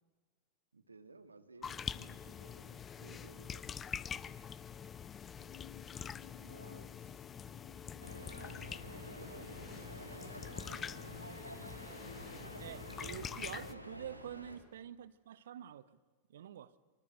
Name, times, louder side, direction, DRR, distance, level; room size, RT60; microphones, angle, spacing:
voice 1, 0.7-4.4 6.4-7.3 7.6-8.1 9.0-10.4, right 3 dB, 80° right, 1.9 m, -59 dB
sound 1, 1.6-13.7, left 7 dB, 20° left, 0.7 m, -45 dB
sound 2, 5.4-10.7, left 17 dB, 55° left, 1.4 m, -59 dB
sound 3, 8.0-14.6, equal, 90° left, 2.8 m, -49 dB
voice 2, 12.6-15.9 16.3-16.7, right 10 dB, 60° right, 1.1 m, -47 dB
25.0 x 24.5 x 8.0 m
figure-of-eight pair, 90°, 0 cm